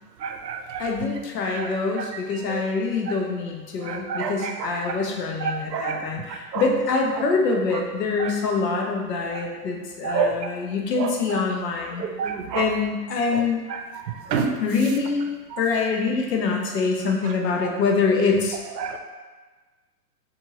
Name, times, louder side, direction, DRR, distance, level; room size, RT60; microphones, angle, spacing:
voice 1, 0.2-0.8 3.9-4.5 5.7-6.0 6.5-6.6 10.0-10.3 12.0-12.7 14.3-14.5 18.8-19.0, right 6 dB, 85° right, 5 dB, 0.6 m, -27 dB
voice 2, 0.8-12.0 12.5-13.6 14.6-15.2 15.6-18.6, left 4 dB, 85° left, 0 dB, 0.8 m, -25 dB
2.8 x 2.6 x 2.9 m, 1.3 s
hypercardioid pair, 165°, 48 cm